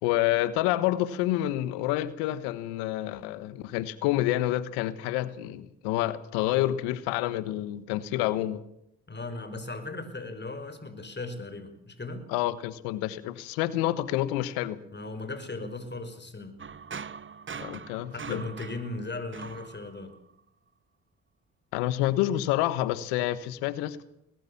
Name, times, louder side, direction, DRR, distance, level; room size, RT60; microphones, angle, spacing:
voice 1, 0.0-8.6 12.3-14.8 17.6-18.4 21.7-24.0, left 14 dB, 85° left, 1.3 m, -28 dB
voice 2, 9.1-12.3 14.9-16.5 18.1-20.1, left 2 dB, 25° left, 5.6 m, -37 dB
sound 1, 16.6-20.4, right 6 dB, 30° right, 1.0 m, -42 dB
21.0 x 20.5 x 7.2 m
hypercardioid pair, 50°, 40 cm